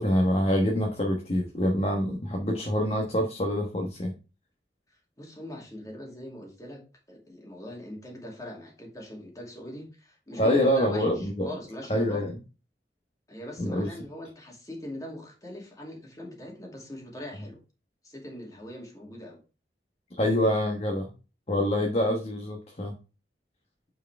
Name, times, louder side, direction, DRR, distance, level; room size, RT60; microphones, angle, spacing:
voice 1, 0.0-4.1 10.4-11.5 11.9-12.3 13.6-13.9 20.2-21.0 21.5-22.9, equal, 35° left, 1 dB, 1.2 m, -25 dB
voice 2, 5.2-6.8 7.1-12.2 13.3-17.6 18.0-19.4, left 1 dB, 20° left, 0 dB, 2.3 m, -41 dB
8.9 x 4.7 x 3.4 m, 0.32 s
head